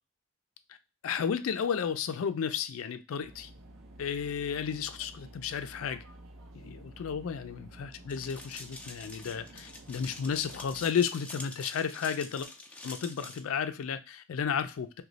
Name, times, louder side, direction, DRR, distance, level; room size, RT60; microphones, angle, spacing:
voice 1, 1.0-3.5 4.0-6.0 6.5-12.5 12.8-15.0, left 7 dB, 85° left, 0.4 m, -33 dB
sound 1, 3.2-10.9, right 1 dB, 70° right, 0.5 m, -51 dB
sound 2, 8.1-13.4, left 2 dB, 5° left, 0.4 m, -46 dB
3.0 x 2.2 x 3.9 m
head